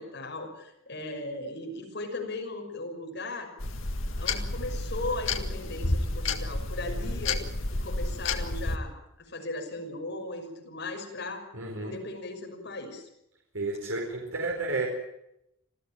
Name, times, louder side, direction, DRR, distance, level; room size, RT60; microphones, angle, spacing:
voice 1, 0.0-3.5 4.2-7.4 7.7-8.9 9.3-11.4 11.8-13.1, left 2 dB, 55° left, 2 dB, 6.0 m, -37 dB
sound 1, 3.6-8.8, left 2 dB, 70° left, 1.8 m, -31 dB
voice 2, 11.5-12.0 13.5-14.9, right 3 dB, 80° right, 0 dB, 4.7 m, -31 dB
27.0 x 15.0 x 9.1 m, 0.82 s
head